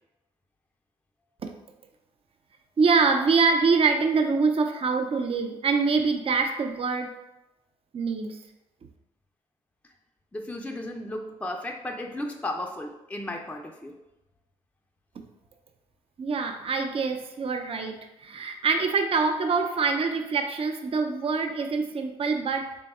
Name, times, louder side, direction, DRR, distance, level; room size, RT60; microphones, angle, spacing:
voice 1, 2.8-7.1 7.9-8.4 16.2-22.8, right 4 dB, 40° right, 5 dB, 0.5 m, -25 dB
voice 2, 10.3-14.0, left 1 dB, 10° left, 2 dB, 0.5 m, -34 dB
3.4 x 2.2 x 4.1 m, 0.92 s
hypercardioid pair, 50°, 15 cm